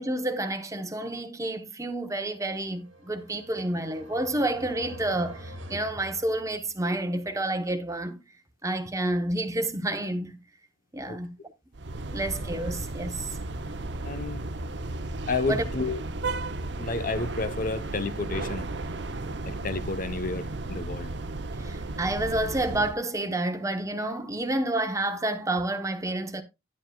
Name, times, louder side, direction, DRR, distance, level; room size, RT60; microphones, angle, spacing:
voice 1, 0.0-8.2 8.6-10.4 10.9-11.3 12.0-13.4 15.5-15.7 21.6-26.4, right 1 dB, 15° right, 0.9 m, -29 dB
sound 1, 2.5-6.9, equal, 85° right, 1.7 m, -45 dB
sound 2, 11.7-23.0, right 2 dB, 65° right, 0.8 m, -34 dB
voice 2, 14.0-14.4 15.3-16.0 16.8-18.7 19.4-21.1, left 3 dB, 45° left, 0.8 m, -31 dB
10.5 x 9.9 x 2.3 m
head